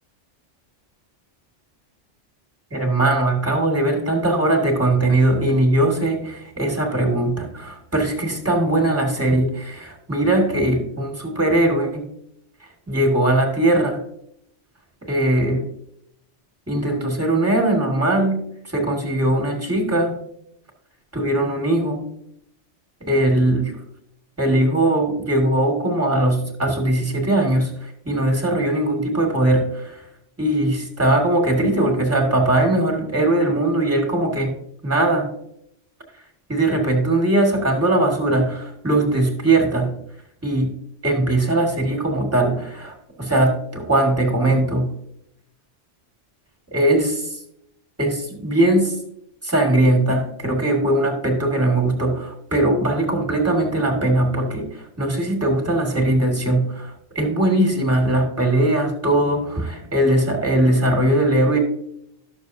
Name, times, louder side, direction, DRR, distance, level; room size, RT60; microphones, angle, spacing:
voice 1, 2.7-12.1 12.9-14.0 15.0-15.6 16.7-18.4 18.7-20.2 21.1-22.0 23.0-23.7 24.4-30.0 30.4-34.5 34.8-35.3 36.5-39.9 40.4-40.7 41.0-44.9 46.7-47.2 48.0-49.0 49.4-61.6, right 1 dB, 10° right, 1 dB, 1.8 m, -20 dB
12.5 x 6.8 x 2.7 m, 0.73 s
omnidirectional pair, 1.2 m